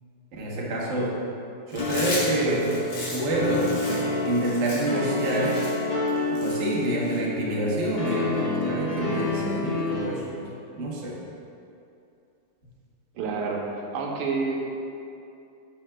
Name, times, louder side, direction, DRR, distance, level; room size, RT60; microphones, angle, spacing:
voice 1, 0.4-1.2 1.7-2.8 3.1-3.7 4.1-5.6 6.3-11.2, right 1 dB, 45° right, -5 dB, 1.0 m, -27 dB
Chewing mastication, 1.7-7.2, left 2 dB, 70° left, 2.3 m, -36 dB
sound 1, 1.8-10.0, left 3 dB, 25° left, 0.8 m, -29 dB
voice 2, 13.1-13.7 13.9-14.6, right 4 dB, 90° right, -1 dB, 1.7 m, -28 dB
9.3 x 5.9 x 2.2 m, 2.7 s
omnidirectional pair, 2.4 m